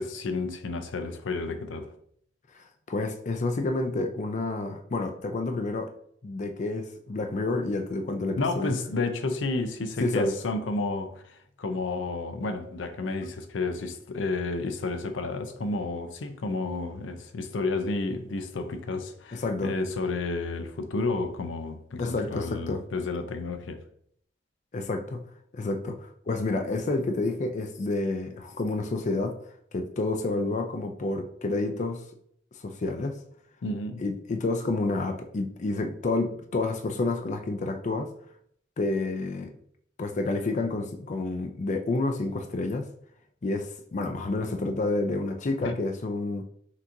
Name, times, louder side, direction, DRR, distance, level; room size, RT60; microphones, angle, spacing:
voice 1, 0.0-1.9 8.4-23.8 33.6-34.0 45.6-45.7, left 3 dB, 90° left, 0.5 m, -31 dB
voice 2, 2.5-5.9 6.2-8.7 10.0-10.3 19.3-19.7 22.0-22.8 24.7-25.2 25.5-29.3 29.7-32.0 32.5-33.2 34.0-38.1 38.8-39.5 40.0-42.9 43.4-46.4, left 2 dB, 40° left, 0.4 m, -29 dB
5.9 x 2.8 x 2.6 m
head